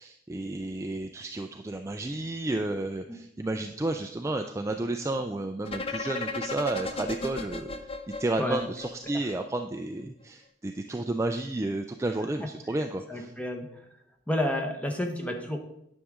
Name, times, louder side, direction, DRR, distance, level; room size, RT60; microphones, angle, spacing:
voice 1, 0.0-7.7 8.2-13.3, right 2 dB, 15° right, 5 dB, 0.3 m, -32 dB
sound 1, 5.7-9.5, left 3 dB, 30° left, 0.6 m, -35 dB
voice 2, 13.1-13.8 14.3-15.6, left 1 dB, 5° left, 3 dB, 0.9 m, -30 dB
10.0 x 6.3 x 3.6 m, 0.78 s
head